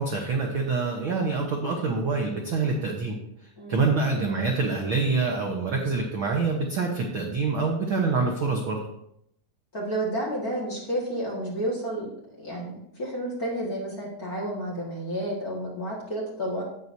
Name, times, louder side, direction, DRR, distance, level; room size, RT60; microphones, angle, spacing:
voice 1, 0.0-3.2 3.7-8.8, right 4 dB, 75° right, 1 dB, 1.1 m, -26 dB
voice 2, 3.6-3.9 9.7-12.1 12.4-16.6, right 1 dB, 35° left, -4 dB, 1.6 m, -31 dB
11.0 x 8.5 x 2.7 m, 0.76 s
omnidirectional pair, 3.7 m